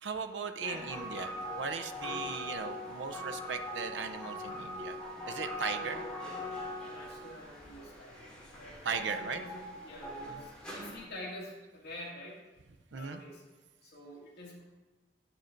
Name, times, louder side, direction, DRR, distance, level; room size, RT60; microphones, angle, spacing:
voice 1, 0.0-5.0 5.3-6.0 8.8-9.4 10.3-10.4 12.9-13.2, right 5 dB, 80° right, 7 dB, 0.6 m, -38 dB
sound 1, 0.6-11.0, left 1 dB, 5° left, 2.4 m, -41 dB
voice 2, 5.7-6.1 6.8-12.4 12.9-13.4 13.8-14.6, left 1 dB, 60° left, -4 dB, 2.2 m, -47 dB
9.6 x 6.6 x 3.8 m, 1.2 s
head